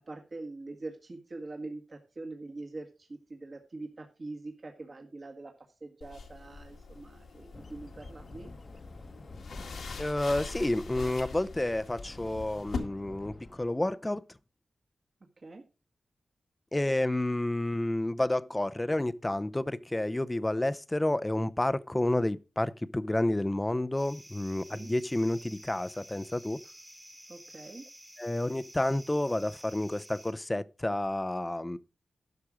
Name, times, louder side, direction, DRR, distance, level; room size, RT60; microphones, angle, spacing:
voice 1, 0.1-5.5 5.8-8.5 15.4-15.6 24.7-24.9 27.3-27.8, right 2 dB, 50° right, 1.6 m, -43 dB
sound 1, 6.0-12.8, left 4 dB, 85° left, 2.0 m, -42 dB
sound 2, 7.5-13.7, left 2 dB, 45° left, 1.0 m, -50 dB
voice 2, 10.0-14.2 16.7-26.6 28.2-31.8, left 1 dB, 15° left, 0.6 m, -30 dB
sound 3, 24.0-30.3, right 1 dB, 10° right, 1.3 m, -51 dB
11.5 x 6.0 x 4.9 m
cardioid pair, 70°, 0 cm